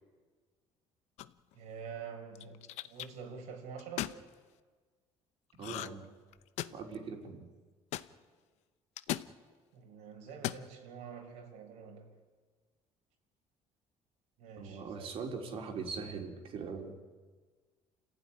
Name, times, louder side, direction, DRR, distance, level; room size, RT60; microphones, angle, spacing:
sound 1, 1.2-1.5 2.3-3.1 3.8-4.2 5.6-6.1 6.3-6.9 7.9-8.1 9.0-9.3 10.3-10.7, left 14 dB, 75° left, 0.8 m, -37 dB
voice 1, 1.5-4.2 9.7-12.1 14.4-15.1, right 6 dB, 90° right, 2 dB, 5.5 m, -47 dB
voice 2, 5.5-6.1 6.7-7.5 14.6-17.0, right 5 dB, 55° right, 3 dB, 3.8 m, -41 dB
28.0 x 15.5 x 10.0 m, 1.5 s
cardioid pair, 135°, 12 cm